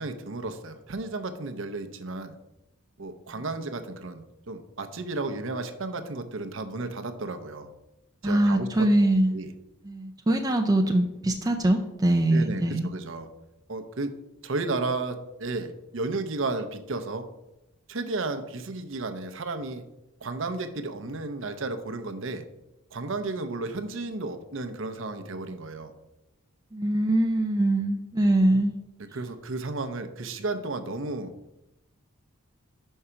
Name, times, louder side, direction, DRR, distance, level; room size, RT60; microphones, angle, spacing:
voice 1, 0.0-2.3 3.0-7.7 8.2-8.9 9.3-9.5 12.3-13.3 13.7-14.1 14.4-17.3 17.9-19.8 20.2-22.4 22.9-25.9 29.1-31.3, right 3 dB, 60° right, 7 dB, 0.6 m, -33 dB
voice 2, 8.2-9.4 9.8-12.9 26.7-28.7, right 1 dB, 15° right, 3 dB, 0.4 m, -23 dB
5.5 x 4.9 x 5.6 m, 0.92 s
head